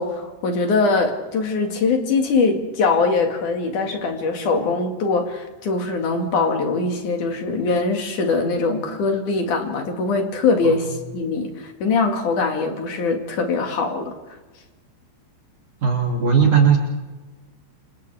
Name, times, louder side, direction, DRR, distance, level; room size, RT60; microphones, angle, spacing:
voice 1, 0.0-14.1, left 4 dB, 50° left, 3 dB, 2.9 m, -22 dB
voice 2, 15.8-16.8, right 6 dB, 45° right, -1 dB, 3.6 m, -17 dB
29.5 x 27.5 x 3.5 m, 1.2 s
omnidirectional pair, 5.7 m